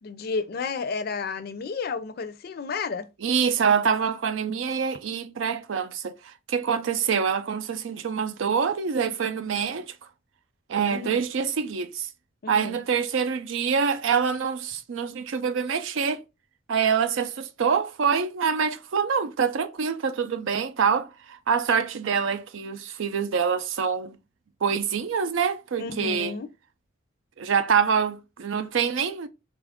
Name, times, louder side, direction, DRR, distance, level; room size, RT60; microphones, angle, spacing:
voice 1, 0.0-3.1 10.9-11.2 12.4-12.8 25.8-26.5, left 4 dB, 50° left, 0.4 m, -32 dB
voice 2, 3.2-9.9 10.7-12.1 12.5-16.2 16.7-24.2 24.6-26.3 27.4-29.3, right 6 dB, 85° right, 0.5 m, -25 dB
3.9 x 2.4 x 3.5 m
head